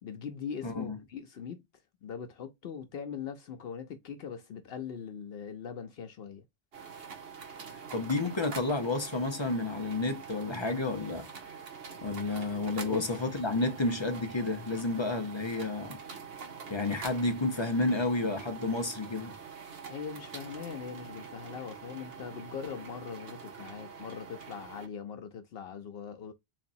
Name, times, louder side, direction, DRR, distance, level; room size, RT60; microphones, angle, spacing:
voice 1, 0.0-1.6 2.0-6.4 12.9-13.2 19.9-26.3, left 7 dB, 70° left, 0.8 m, -41 dB
voice 2, 0.6-1.0 7.9-11.3 12.0-16.0 16.7-19.3, left 2 dB, 35° left, 0.6 m, -31 dB
sound 1, 6.7-24.9, right 6 dB, 70° right, 1.2 m, -45 dB
3.9 x 3.3 x 2.6 m
omnidirectional pair, 1.1 m